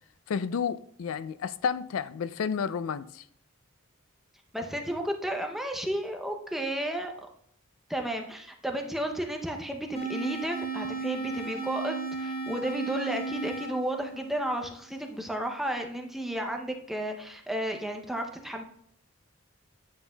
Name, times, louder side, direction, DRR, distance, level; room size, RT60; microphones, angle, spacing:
voice 1, 0.3-3.2, left 6 dB, 75° left, 0.4 m, -31 dB
voice 2, 4.5-7.1 7.9-18.6, right 1 dB, ahead, 0.6 m, -33 dB
sound 1, 10.0-15.0, right 4 dB, 30° left, 1.4 m, -35 dB
9.5 x 5.5 x 2.3 m
head